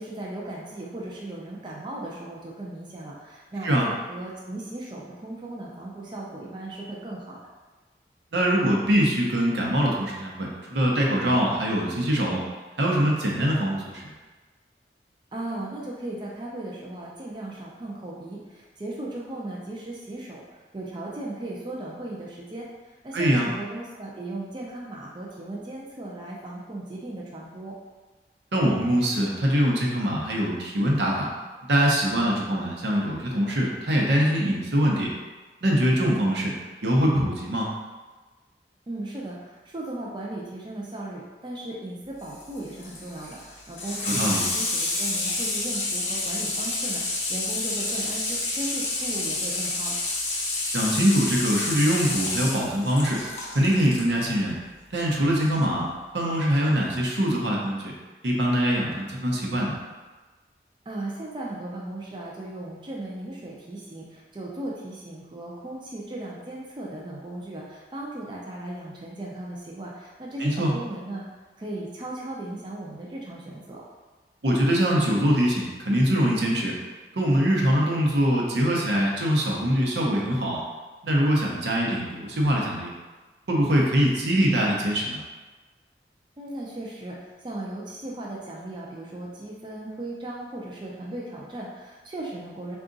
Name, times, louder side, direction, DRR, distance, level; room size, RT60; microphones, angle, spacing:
voice 1, 0.0-7.4 15.3-27.8 38.9-50.0 60.9-71.3 71.6-73.8 86.4-92.8, right 1 dB, 25° right, -4 dB, 0.4 m, -37 dB
voice 2, 8.3-12.4 12.8-14.1 23.1-23.5 28.5-31.3 31.7-35.1 35.6-36.5 36.8-37.7 44.0-44.4 50.7-53.2 53.5-54.5 54.9-55.9 56.1-57.9 58.2-59.8 70.4-70.7 74.4-76.7 77.1-80.6 81.0-82.9 83.5-85.2, equal, 75° right, -2 dB, 0.8 m, -23 dB
Water tap faucet / Sink (filling or washing), 42.2-54.1 55.4-55.5, left 2 dB, 40° left, 0.8 m, -29 dB
3.7 x 2.4 x 3.8 m, 1.3 s
head